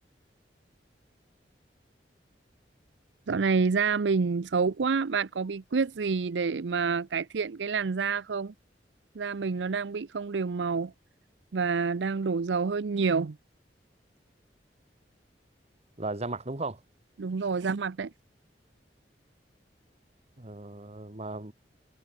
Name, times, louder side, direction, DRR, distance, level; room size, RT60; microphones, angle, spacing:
voice 1, 3.3-8.5 9.2-10.9 11.5-13.4 17.2-18.1, right 5 dB, 90° right, 0.6 m, -28 dB
voice 2, 16.0-16.8 20.4-21.5, right 2 dB, 40° right, 1.7 m, -36 dB
head